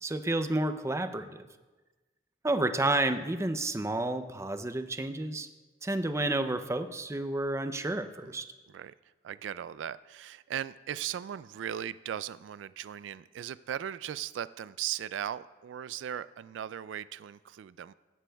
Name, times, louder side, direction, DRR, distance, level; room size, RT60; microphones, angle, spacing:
voice 1, 0.0-1.5 2.4-5.5 5.8-8.5, right 2 dB, 15° right, 9 dB, 0.5 m, -30 dB
voice 2, 9.2-17.9, right 10 dB, 85° right, 17 dB, 0.3 m, -38 dB
17.0 x 13.0 x 2.3 m, 1.2 s
head